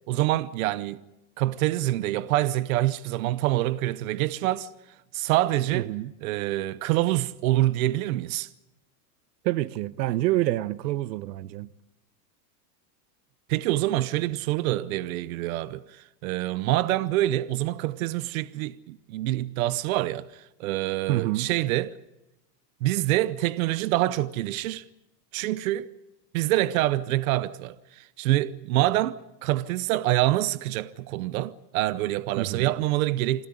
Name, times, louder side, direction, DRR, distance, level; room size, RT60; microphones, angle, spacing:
voice 1, 0.1-1.0 1.4-4.7 5.1-5.9 6.2-8.5 13.5-22.0 22.8-24.8 25.3-25.9 26.3-33.5, right 15 dB, 55° right, 0.8 m, -26 dB
voice 2, 5.7-6.1 9.4-11.7 21.1-21.5 32.4-32.7, right 16 dB, 80° right, 1.0 m, -27 dB
26.5 x 14.5 x 9.9 m
supercardioid pair, 175°, 49 cm